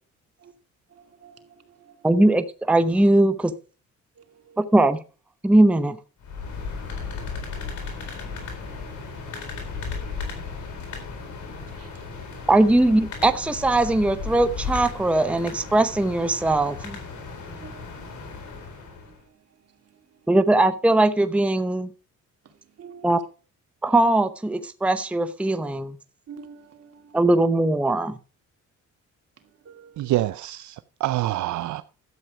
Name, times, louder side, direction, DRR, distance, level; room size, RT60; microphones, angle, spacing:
voice 1, 0.9-2.1 4.2-4.7 7.3-7.4 8.9-9.0 10.1-10.2 11.8-12.0 12.5-12.6 17.6-18.7 19.0-19.4 19.8-20.0 22.4-23.2 26.3-27.2 29.4-30.1, right 6 dB, 55° right, 2.5 m, -47 dB
voice 2, 2.0-3.5 4.7-5.0 5.4-6.0 12.5-17.0 20.3-21.9 23.0-23.2 23.8-25.9 27.1-28.2, right 2 dB, 5° right, 0.8 m, -20 dB
sound 1, 6.2-19.2, left 4 dB, 75° left, 4.2 m, -35 dB
voice 3, 30.0-31.8, right 15 dB, 70° right, 0.6 m, -26 dB
12.5 x 8.0 x 4.8 m
cardioid pair, 90°, 30 cm